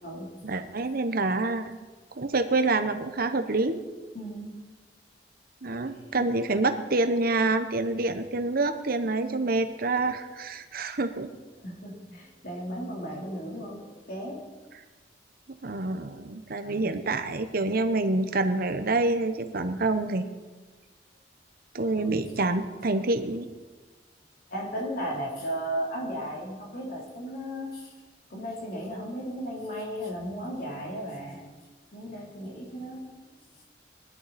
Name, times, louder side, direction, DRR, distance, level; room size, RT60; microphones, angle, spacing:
voice 1, 0.4-1.7 2.2-3.8 5.6-11.3 15.6-20.2 21.7-23.5, right 2 dB, 55° right, 9 dB, 1.0 m, -27 dB
voice 2, 4.1-4.6 6.1-6.3 11.6-14.5 16.6-17.0 21.9-22.2 22.9-23.0 24.5-27.9 28.3-31.5 31.9-33.4, equal, 55° left, -2 dB, 3.6 m, -35 dB
20.0 x 12.0 x 4.3 m, 1.3 s
head